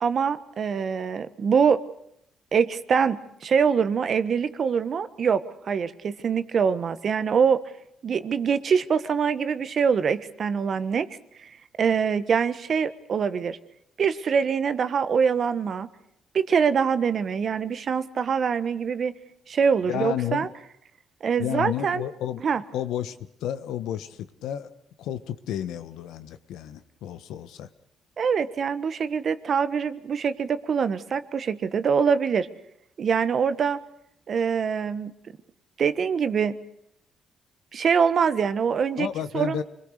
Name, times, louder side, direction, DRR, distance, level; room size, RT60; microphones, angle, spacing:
voice 1, 0.0-1.8 2.5-7.6 8.0-11.1 11.4-11.5 11.8-13.6 14.0-15.9 16.3-19.1 19.5-20.5 21.2-22.0 22.4-22.6 28.2-32.5 33.0-33.8 34.3-35.1 35.8-36.5 37.7-39.1 39.3-39.6, right 6 dB, 55° right, 12 dB, 1.4 m, -24 dB
voice 2, 19.8-20.5 21.4-22.4 22.7-24.7 25.0-27.7 39.0-39.6, left 10 dB, 85° left, 11 dB, 1.3 m, -31 dB
27.0 x 21.5 x 6.7 m, 0.72 s
cardioid pair, 90°, 0 cm